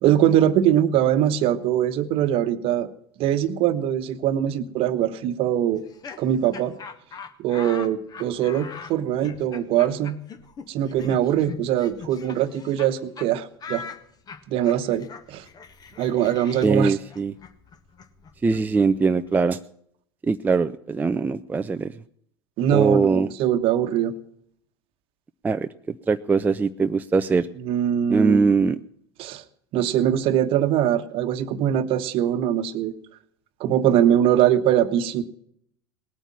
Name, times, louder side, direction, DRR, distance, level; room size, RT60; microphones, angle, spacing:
voice 1, 0.0-2.9 3.2-5.8 6.2-6.7 7.4-10.2 10.7-13.8 14.5-15.4 16.0-16.9 22.6-24.1 27.6-28.6 29.2-29.4 29.7-32.9 33.6-35.2, right 10 dB, 45° right, 10 dB, 1.2 m, -22 dB
Laughter, 5.7-12.9 13.2-13.3 13.6-19.3, left 5 dB, 30° left, 1.4 m, -41 dB
voice 2, 16.6-17.3 18.4-19.6 20.2-21.9 22.7-23.3 25.4-27.5 28.1-28.8, right 4 dB, 15° right, 9 dB, 0.5 m, -21 dB
19.0 x 9.0 x 7.5 m, 0.68 s
figure-of-eight pair, 80°, 13 cm